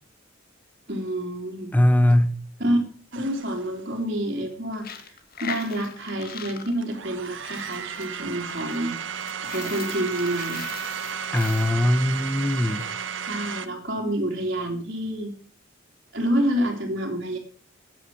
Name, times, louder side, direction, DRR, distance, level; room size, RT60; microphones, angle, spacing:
voice 1, 0.9-1.7 2.6-2.8 3.1-8.9 9.4-10.6 13.3-15.3 16.1-17.4, right 1 dB, 50° right, 3.2 m, -28 dB
voice 2, 1.7-2.4 11.3-12.9, left 1 dB, 10° left, 1.0 m, -20 dB
sound 1, 3.1-3.9 5.0-5.1 6.8-13.7, right 7 dB, 65° right, 1.2 m, -34 dB
Coin (dropping), 4.7-13.0, left 7 dB, 50° left, 1.7 m, -41 dB
15.5 x 9.6 x 6.3 m
head